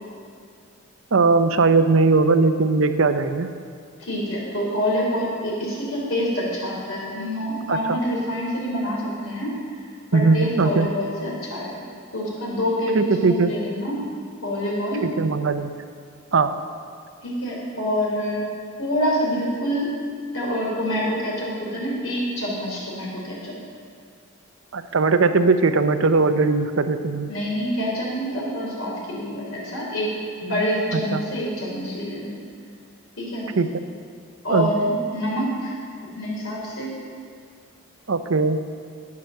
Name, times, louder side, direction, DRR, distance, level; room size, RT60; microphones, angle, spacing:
voice 1, 1.1-3.5 7.7-8.0 10.1-10.9 12.9-13.5 14.9-15.8 16.3-16.5 24.7-27.3 30.9-31.2 33.5-33.7 34.5-34.7 38.1-38.6, right 3 dB, 75° right, 10 dB, 0.6 m, -19 dB
voice 2, 4.0-9.5 10.1-14.0 14.4-15.1 17.2-18.5 18.8-19.9 20.3-23.5 27.3-30.1 30.4-32.3 33.2-33.5 34.4-35.7 36.2-36.9, equal, 80° left, -4 dB, 3.9 m, -26 dB
10.5 x 9.6 x 6.5 m, 2.2 s
head